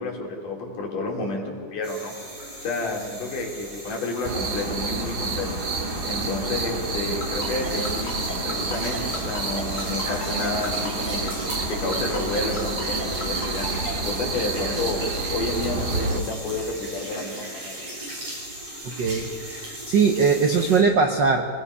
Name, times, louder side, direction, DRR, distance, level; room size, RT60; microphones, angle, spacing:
voice 1, 0.0-2.1 2.6-5.5 6.0-11.3 11.7-13.7 14.0-15.0 15.3-17.7, left 3 dB, 80° left, 0 dB, 4.5 m, -30 dB
sound 1, 1.8-20.8, right 1 dB, 55° right, 8.8 m, -38 dB
sound 2, 4.2-16.2, right 3 dB, 35° right, 1.9 m, -29 dB
Ringtone, 7.2-13.9, left 1 dB, 30° left, 4.7 m, -34 dB
voice 2, 18.8-21.5, right 5 dB, 85° right, 4 dB, 0.9 m, -21 dB
25.0 x 20.0 x 5.6 m, 2.1 s
omnidirectional pair, 3.6 m